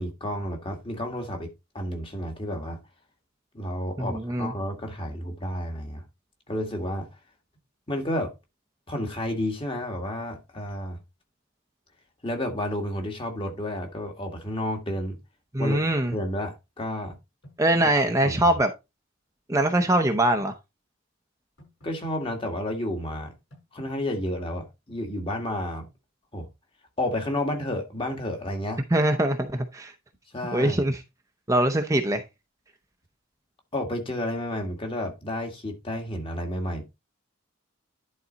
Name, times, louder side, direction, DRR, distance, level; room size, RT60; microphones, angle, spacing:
voice 1, 0.0-2.8 3.5-6.0 6.5-7.1 7.9-8.3 8.9-11.0 12.2-15.2 15.6-17.2 17.7-17.8 18.1-18.6 21.8-23.3 23.7-25.9 26.3-26.5 27.0-28.8 30.3-30.9 33.7-36.8, left 1 dB, 25° left, 1.9 m, -31 dB
voice 2, 4.0-4.5 15.5-16.1 17.6-18.7 19.5-20.5 28.9-29.9 30.5-31.0 31.5-32.2, right 1 dB, 15° right, 0.7 m, -23 dB
sound 1, 17.1-17.9 19.8-20.5 21.6-22.1 23.0-23.6, left 1 dB, 65° left, 6.0 m, -51 dB
11.0 x 4.1 x 4.0 m
head